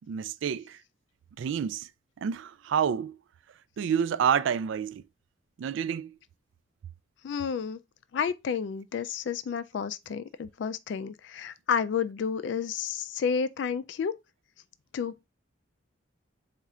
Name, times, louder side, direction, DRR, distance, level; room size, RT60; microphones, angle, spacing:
voice 1, 0.1-0.8 1.4-1.9 2.2-3.2 3.8-5.0 5.6-6.1, right 7 dB, 70° right, 0.3 m, -28 dB
voice 2, 7.2-7.8 8.1-14.1 14.9-15.3, left 6 dB, 65° left, 0.3 m, -31 dB
4.2 x 2.5 x 4.8 m
head